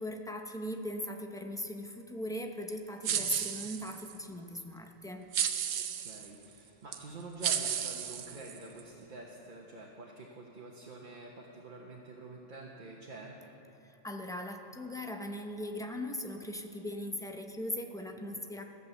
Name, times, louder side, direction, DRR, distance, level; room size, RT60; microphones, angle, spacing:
voice 1, 0.0-5.3 13.9-18.6, left 1 dB, 5° left, 4 dB, 0.4 m, -39 dB
voice 2, 3.0-3.3 5.7-13.3, right 2 dB, 40° right, -2 dB, 1.2 m, -47 dB
sound 1, 3.0-4.2 5.3-6.3 6.9-7.0 7.4-8.8, right 9 dB, 90° right, 1.1 m, -33 dB
15.0 x 8.2 x 7.0 m, 2.9 s
omnidirectional pair, 1.3 m